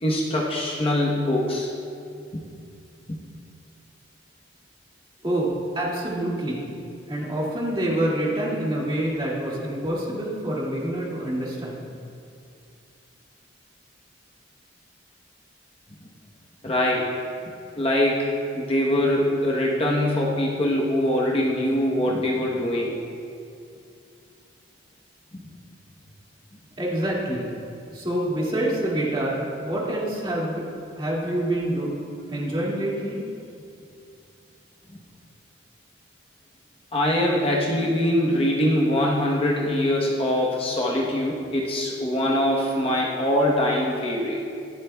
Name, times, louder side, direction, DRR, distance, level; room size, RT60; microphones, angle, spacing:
voice 1, 0.0-1.7 3.1-3.2 16.6-17.1 17.8-18.3 18.5-22.9 25.3-25.4 36.9-44.4, left 1 dB, 30° left, -3 dB, 1.0 m, -23 dB
voice 2, 5.2-6.6 7.1-11.8 26.8-27.5 27.9-30.7 31.0-31.9 32.3-33.2, right 1 dB, 25° right, -5 dB, 2.2 m, -26 dB
23.5 x 8.0 x 2.3 m, 2.5 s
head